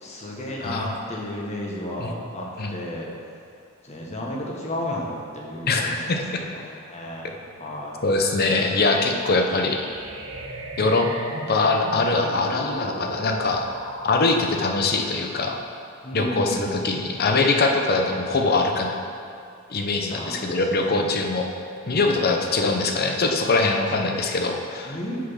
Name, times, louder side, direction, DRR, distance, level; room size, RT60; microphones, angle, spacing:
voice 1, 0.0-3.1 3.8-6.6 6.9-8.0 16.0-16.9 20.1-21.0 21.9-22.2 24.8-25.2, left 1 dB, 35° left, -3 dB, 1.3 m, -33 dB
voice 2, 5.7-6.4 8.0-9.9 10.8-11.1 11.5-13.7 14.0-15.6 16.1-18.9 19.7-21.5 21.9-25.0, left 3 dB, 50° left, 3 dB, 0.7 m, -22 dB
sound 1, 8.1-14.1, right 1 dB, 75° right, 0.8 m, -36 dB
6.3 x 6.1 x 5.6 m, 2.4 s
head